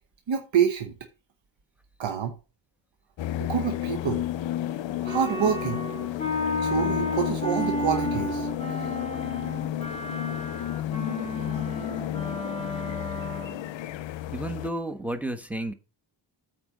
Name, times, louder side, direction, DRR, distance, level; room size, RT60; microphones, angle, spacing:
voice 1, 0.3-0.9 2.0-2.3 3.4-4.2 5.0-5.8 6.6-8.5, right 8 dB, 75° right, 1.1 m, -27 dB
sound 1, 3.2-14.7, left 13 dB, 80° left, 0.6 m, -32 dB
Wind instrument woodwind instrument, 5.0-13.7, left 1 dB, 15° left, 2.9 m, -32 dB
voice 2, 14.3-15.7, right 1 dB, 5° right, 1.2 m, -32 dB
8.7 x 4.3 x 6.5 m
wide cardioid pair, 90°, 45 cm